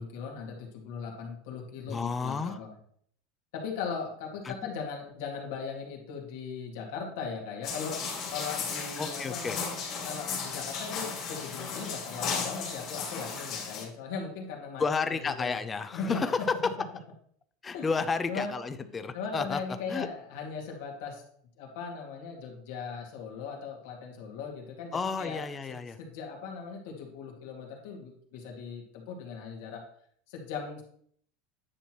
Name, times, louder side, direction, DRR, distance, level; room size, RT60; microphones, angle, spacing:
voice 1, 0.0-2.7 3.5-8.0 8.3-9.7 10.0-14.8 15.4-15.6 15.9-16.2 17.7-17.9 18.3-18.5 19.1-21.2 21.6-29.8 30.3-30.8, left 5 dB, 70° left, 0 dB, 2.0 m, -38 dB
voice 2, 1.9-2.6 4.4-4.7 9.0-9.6 14.8-16.5 17.6-19.6 19.9-20.1 24.9-26.0, left 4 dB, 15° left, 10 dB, 0.5 m, -32 dB
sound 1, 7.6-13.9, left 5 dB, 35° left, 2.2 m, -35 dB
9.8 x 6.1 x 3.0 m, 0.63 s
supercardioid pair, 165°, 0 cm